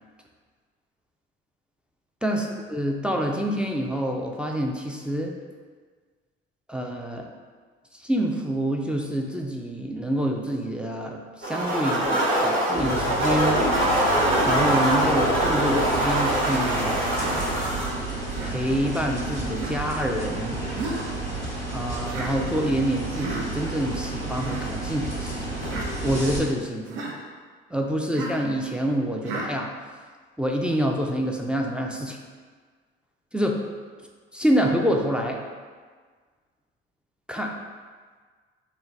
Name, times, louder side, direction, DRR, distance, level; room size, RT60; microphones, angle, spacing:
voice 1, 2.2-5.3 6.7-7.3 7.9-13.6 14.4-17.0 18.4-20.6 21.7-25.5 26.0-27.0 27.7-29.7 30.4-32.2 33.3-33.6 34.3-35.4 37.3-37.5, equal, 5° right, 0 dB, 0.3 m, -27 dB
sound 1, 11.4-17.9, right 1 dB, 40° right, 1.1 m, -23 dB
sound 2, 12.8-26.4, right 2 dB, 85° right, 1.0 m, -32 dB
Human voice, 14.5-14.8 15.9-16.2 17.2-17.5 18.3-18.5 19.6-19.8 20.8-21.1 22.1-22.3 23.1-23.5 24.3-24.7 25.6-25.9 26.9-27.2 28.1-28.4 29.2-29.5, right 2 dB, 70° right, 0.6 m, -34 dB
3.0 x 2.1 x 3.7 m, 1.6 s
hypercardioid pair, 50°, 30 cm